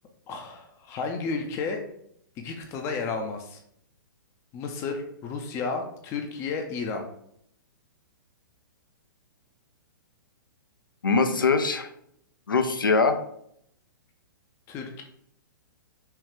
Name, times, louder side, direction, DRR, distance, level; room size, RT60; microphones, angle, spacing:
voice 1, 0.3-1.8 2.4-3.6 4.5-7.1 14.7-15.0, left 4 dB, 25° left, 4 dB, 0.5 m, -32 dB
voice 2, 11.0-11.9 12.5-13.2, left 4 dB, 75° left, 8 dB, 0.6 m, -22 dB
5.5 x 2.3 x 3.6 m, 0.71 s
figure-of-eight pair, 110°, 11 cm